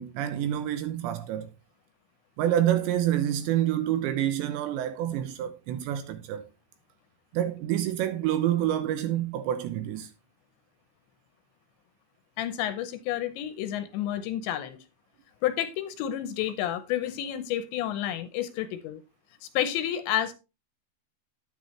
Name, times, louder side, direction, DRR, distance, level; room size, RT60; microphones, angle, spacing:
voice 1, 0.0-1.5 2.4-6.5 7.3-10.1, right 11 dB, 80° right, 2.7 m, -27 dB
voice 2, 12.4-14.8 15.4-19.0 19.4-20.3, left 11 dB, 80° left, 2.9 m, -30 dB
10.5 x 10.0 x 3.2 m
omnidirectional pair, 5.7 m